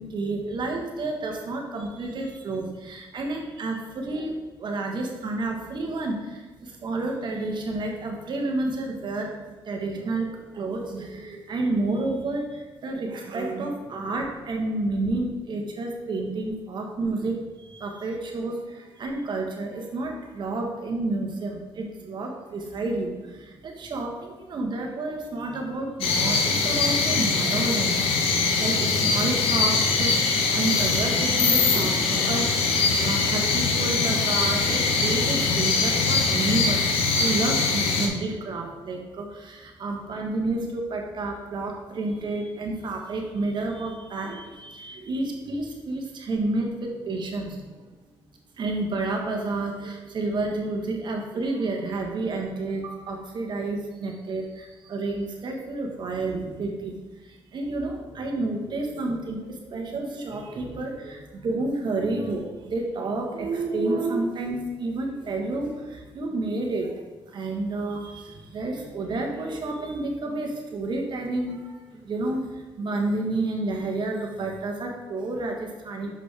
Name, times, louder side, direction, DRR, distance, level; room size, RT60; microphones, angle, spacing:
voice 1, 0.0-36.9 37.2-47.7 48.6-76.1, right 2 dB, 55° right, 2 dB, 1.3 m, -30 dB
sound 1, 26.0-38.1, left 4 dB, 85° left, 0.9 m, -22 dB
6.3 x 5.1 x 3.4 m, 1.3 s
supercardioid pair, 70°, 9 cm